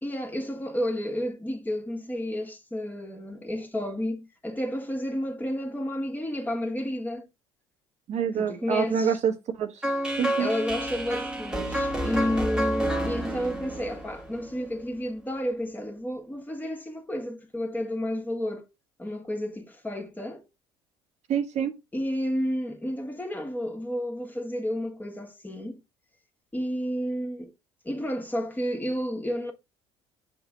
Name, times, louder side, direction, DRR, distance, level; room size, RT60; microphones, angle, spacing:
voice 1, 0.0-7.3 8.4-9.2 10.4-18.7 19.0-20.4 21.9-25.8 26.5-27.5 27.9-29.5, equal, 15° left, 1.8 m, -31 dB
voice 2, 8.1-9.8 10.2-10.5 21.3-21.7, right 7 dB, 55° right, 1.2 m, -26 dB
sound 1, 9.8-14.8, right 1 dB, 5° right, 1.4 m, -29 dB
7.0 x 3.8 x 3.8 m
supercardioid pair, 80°, 14 cm